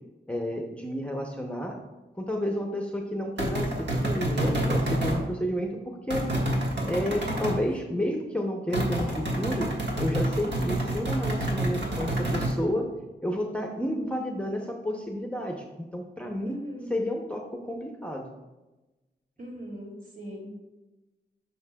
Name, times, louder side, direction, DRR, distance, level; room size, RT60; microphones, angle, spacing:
voice 1, 0.3-1.8 2.2-6.3 6.9-12.9 13.2-16.6 16.9-18.2, equal, 5° left, 1 dB, 0.6 m, -31 dB
sound 1, 3.4-5.2 6.1-7.6 8.7-12.6, right 1 dB, 70° right, 1.5 m, -28 dB
voice 2, 16.4-17.0 19.4-20.5, equal, 50° right, -2 dB, 2.3 m, -39 dB
9.4 x 5.8 x 2.2 m, 1.1 s
wide cardioid pair, 95°, 19 cm